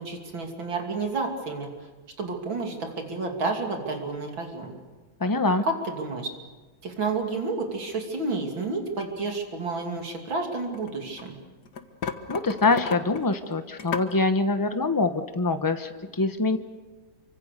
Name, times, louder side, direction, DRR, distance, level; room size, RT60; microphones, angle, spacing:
voice 1, 0.0-1.7 2.2-4.8 5.6-6.3 6.8-11.4, right 3 dB, 65° right, 3 dB, 3.6 m, -30 dB
voice 2, 5.2-5.7 12.3-16.6, left 3 dB, 15° left, 8 dB, 0.8 m, -24 dB
sound 1, 10.4-11.3 11.7-14.1, left 6 dB, 55° left, 1.8 m, -34 dB
28.5 x 25.0 x 6.7 m, 1.2 s
omnidirectional pair, 2.3 m